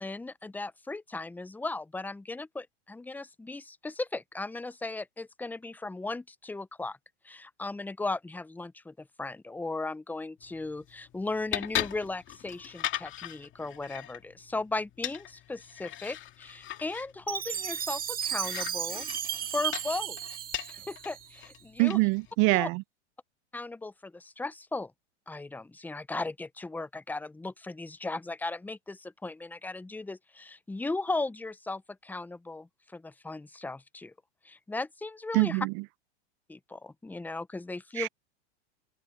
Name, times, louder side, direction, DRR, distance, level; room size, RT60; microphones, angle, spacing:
voice 1, 0.0-7.0 7.2-19.1 19.5-20.2 20.7-22.0 22.5-22.7 23.5-24.9 25.3-34.1 34.4-35.7 36.5-38.1, left 3 dB, 5° left, 0.7 m, -37 dB
sound 1, 10.4-22.3, left 12 dB, 35° left, 2.7 m, -40 dB
Chime, 17.3-21.5, right 10 dB, 25° right, 1.6 m, -34 dB
voice 2, 21.8-22.8 35.3-35.7 38.0-38.1, right 27 dB, 50° right, 1.0 m, -24 dB
hypercardioid pair, 120°, 35 cm